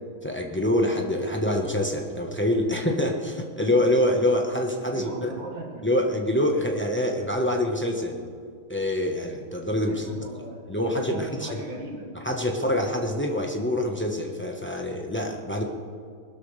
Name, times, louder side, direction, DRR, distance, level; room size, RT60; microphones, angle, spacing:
voice 1, 0.2-5.3 5.8-8.2 8.7-10.3 10.7-11.6 12.1-15.6, left 1 dB, 15° left, 1 dB, 0.4 m, -25 dB
voice 2, 4.9-5.9 9.9-12.1, right 2 dB, 60° right, -1 dB, 2.8 m, -38 dB
21.0 x 13.0 x 3.3 m, 2.2 s
omnidirectional pair, 2.3 m